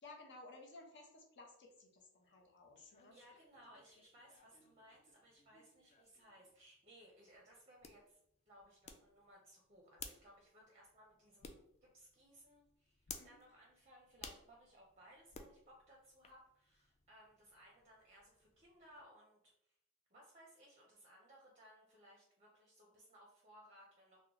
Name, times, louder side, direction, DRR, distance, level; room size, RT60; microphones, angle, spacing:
voice 1, 0.0-3.1 13.2-13.4, left 2 dB, 55° left, 2 dB, 0.7 m, -57 dB
sound 1, 2.2-19.0, left 5 dB, 30° left, 0.3 m, -59 dB
voice 2, 2.7-8.2 8.5-11.6 11.9-19.7 20.1-24.2, equal, 30° right, -2 dB, 0.6 m, -63 dB
3.0 x 2.1 x 3.7 m, 0.74 s
head